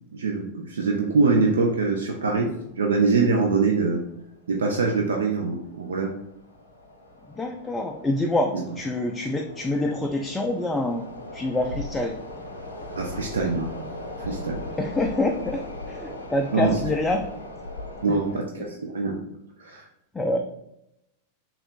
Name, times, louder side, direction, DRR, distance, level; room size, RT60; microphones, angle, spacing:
voice 1, 0.1-2.5 2.8-4.0 4.5-6.1 12.9-13.7 14.2-14.6 16.5-16.7 18.0-19.2 19.6-19.8, right 4 dB, 65° right, 1 dB, 0.4 m, -23 dB
sound 1, 1.5-1.6 1.8-1.9 2.7-2.9 3.2-3.4 3.9-4.3 4.8-18.4, left 2 dB, 80° left, 0.7 m, -39 dB
voice 2, 7.4-11.1 11.3-12.1 14.8-17.2 18.1-18.2 20.1-20.4, left 2 dB, 10° left, 3 dB, 0.3 m, -26 dB
3.4 x 3.0 x 3.6 m, 0.82 s
figure-of-eight pair, 90°, 0 cm